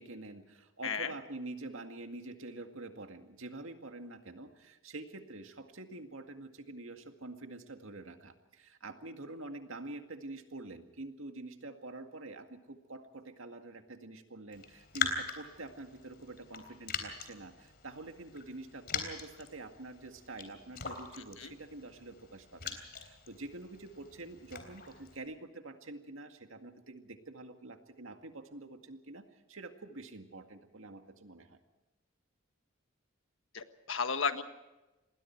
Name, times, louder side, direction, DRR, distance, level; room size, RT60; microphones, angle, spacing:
voice 1, 0.0-31.6, right 2 dB, 80° right, 6 dB, 2.1 m, -46 dB
Raindrop, 14.5-25.2, left 5 dB, 50° left, 3.6 m, -42 dB
voice 2, 33.5-34.4, left 5 dB, 75° left, 9 dB, 1.5 m, -33 dB
27.5 x 20.5 x 4.6 m, 1.1 s
head